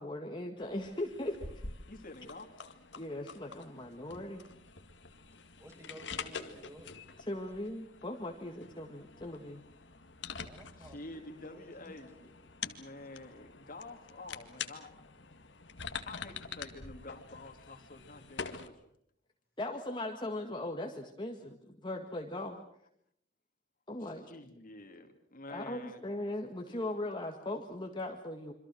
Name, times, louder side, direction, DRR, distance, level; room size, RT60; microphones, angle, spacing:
voice 1, 0.0-1.4 2.9-4.4 7.2-9.6 19.6-22.6 23.9-24.3 25.5-28.5, left 1 dB, 25° left, 2 dB, 1.9 m, -39 dB
sound 1, 0.6-18.7, left 5 dB, 70° left, 2.0 m, -46 dB
voice 2, 1.9-2.5 5.3-5.4 10.8-12.3 12.7-14.9 16.1-18.7 24.0-26.0 26.7-26.8, left 2 dB, 50° left, 5 dB, 2.7 m, -48 dB
voice 3, 5.6-6.9 7.5-7.6 10.4-12.4, right 1 dB, 15° right, 3 dB, 5.3 m, -54 dB
27.5 x 25.5 x 6.3 m, 0.71 s
head